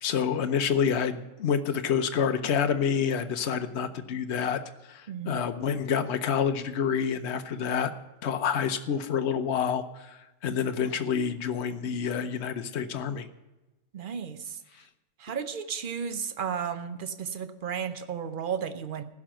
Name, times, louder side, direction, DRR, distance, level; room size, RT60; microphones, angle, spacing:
voice 1, 0.0-4.6 4.9-7.9 8.2-13.2, left 7 dB, 65° left, 8 dB, 1.1 m, -28 dB
voice 2, 5.1-5.5 13.9-14.6 15.2-19.0, right 7 dB, 45° right, 10 dB, 0.9 m, -33 dB
15.5 x 6.1 x 8.8 m, 1.1 s
omnidirectional pair, 1.3 m